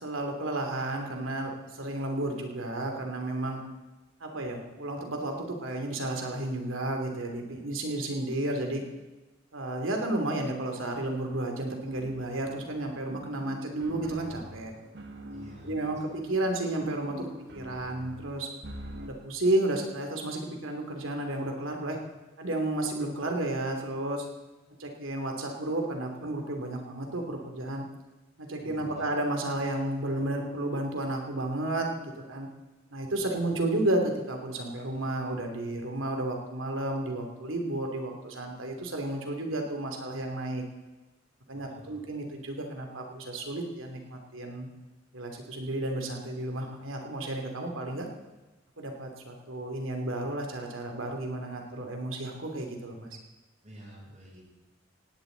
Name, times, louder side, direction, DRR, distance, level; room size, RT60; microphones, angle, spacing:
voice 1, 0.0-3.6 4.2-8.8 9.5-14.7 15.6-17.3 17.5-18.5 19.0-22.0 22.4-24.2 24.8-27.8 28.4-32.5 32.9-40.6 41.5-44.7 45.1-48.1 48.8-53.1, right 1 dB, 90° right, 3 dB, 2.8 m, -32 dB
sound 1, 11.9-19.1, equal, 60° right, 1.6 m, -45 dB
voice 2, 15.3-15.9 28.6-29.0 33.2-33.4 40.1-40.2 41.5-41.9 53.6-54.4, right 1 dB, 40° right, -4 dB, 7.4 m, -49 dB
18.0 x 17.0 x 4.0 m, 1.1 s
head